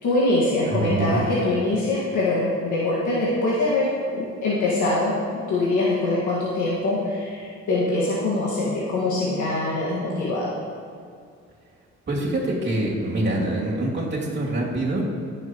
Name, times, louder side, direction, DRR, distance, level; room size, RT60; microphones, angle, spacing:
voice 1, 0.0-10.5, left 2 dB, 75° left, -7 dB, 1.9 m, -23 dB
voice 2, 0.7-1.2 12.1-15.2, right 1 dB, 35° right, -4 dB, 2.8 m, -25 dB
16.5 x 7.1 x 3.1 m, 2.2 s
cardioid pair, 90°, 30 cm